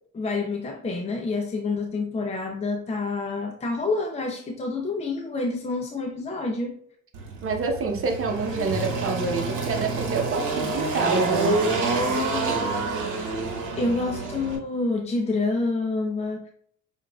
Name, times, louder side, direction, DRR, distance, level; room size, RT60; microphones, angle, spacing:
voice 1, 0.1-6.7 13.8-16.5, left 3 dB, 20° left, 2 dB, 0.5 m, -28 dB
Engine, 7.1-14.6, right 3 dB, 90° right, 1.1 m, -27 dB
voice 2, 7.4-11.6, right 4 dB, 45° right, 3 dB, 0.8 m, -27 dB
6.8 x 2.5 x 2.3 m, 0.63 s
cardioid pair, 90°, 30 cm